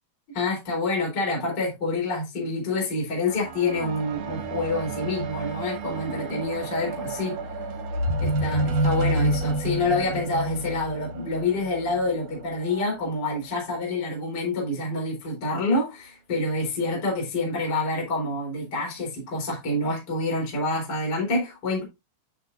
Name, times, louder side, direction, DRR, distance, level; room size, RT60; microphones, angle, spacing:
voice 1, 0.3-7.4 8.2-21.8, left 2 dB, 20° left, 3.8 m, -27 dB
sound 1, 3.3-12.8 13.6-13.7, right 1 dB, 75° right, 1.8 m, -29 dB
10.0 x 6.3 x 2.6 m
omnidirectional pair, 5.9 m